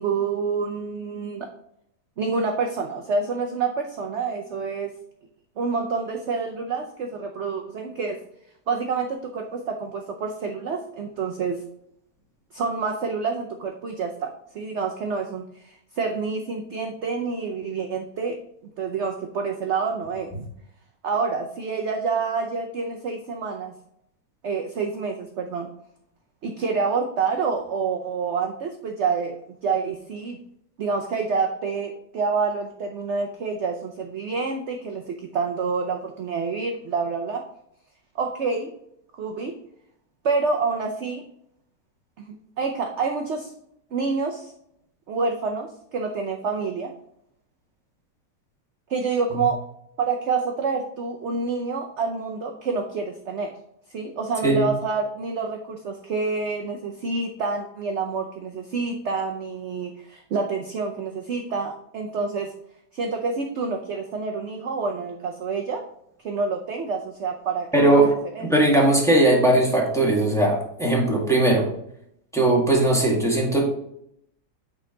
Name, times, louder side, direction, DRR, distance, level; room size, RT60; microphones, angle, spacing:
voice 1, 0.0-1.5 2.2-4.9 5.6-8.2 8.7-11.6 12.5-18.4 18.8-20.3 21.0-23.7 24.4-25.7 26.4-29.3 29.6-30.4 30.8-37.4 38.1-38.7 39.2-39.5 40.2-41.2 42.2-43.5 43.9-44.5 45.1-46.9 48.9-49.6 50.0-53.5 53.9-62.5 62.9-65.8 66.2-68.0 68.3-68.5, right 4 dB, 55° right, 3 dB, 0.8 m, -27 dB
voice 2, 67.7-68.1 68.4-71.7 72.3-73.6, right 1 dB, ahead, -3 dB, 1.9 m, -19 dB
9.3 x 4.0 x 3.9 m, 0.74 s
omnidirectional pair, 1.8 m